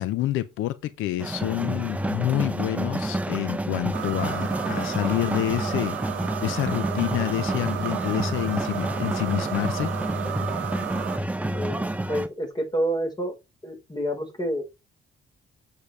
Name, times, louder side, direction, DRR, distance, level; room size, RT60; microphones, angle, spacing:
voice 1, 0.0-6.0 6.4-9.9, left 14 dB, 90° left, 0.7 m, -28 dB
sound 1, 1.2-12.3, right 1 dB, 5° right, 0.8 m, -29 dB
sound 2, 3.9-11.2, right 15 dB, 70° right, 0.5 m, -34 dB
voice 2, 11.5-13.4 13.6-14.6, right 1 dB, 20° left, 4.4 m, -28 dB
8.7 x 6.7 x 3.4 m
cardioid pair, 90°, 20 cm